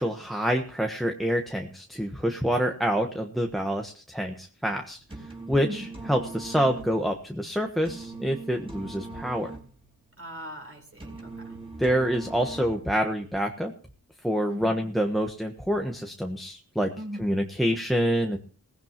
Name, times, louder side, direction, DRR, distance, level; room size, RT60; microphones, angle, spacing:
voice 1, 0.0-9.5 11.8-13.7 14.2-16.9 17.2-18.4, equal, ahead, 3 dB, 1.3 m, -27 dB
sound 1, 4.9-13.1, right 3 dB, 15° right, 4.5 m, -41 dB
voice 2, 5.6-6.1 10.2-11.5 14.5-14.9 17.0-17.4, equal, 35° right, 3 dB, 4.2 m, -40 dB
17.0 x 16.0 x 3.0 m, 0.41 s
wide cardioid pair, 60°, 36 cm